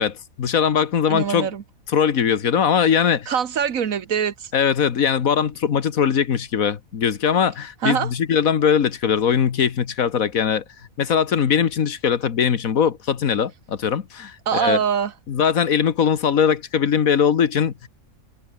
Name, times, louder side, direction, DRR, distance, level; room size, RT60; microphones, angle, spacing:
voice 1, 0.0-1.5 1.9-3.3 4.5-10.6 11.0-14.8 15.3-17.9, left 7 dB, 75° left, 1.7 m, -20 dB
voice 2, 1.1-1.6 3.3-4.5 7.8-8.1 14.5-15.1, right 7 dB, 70° right, 1.6 m, -23 dB
omnidirectional pair, 1.5 m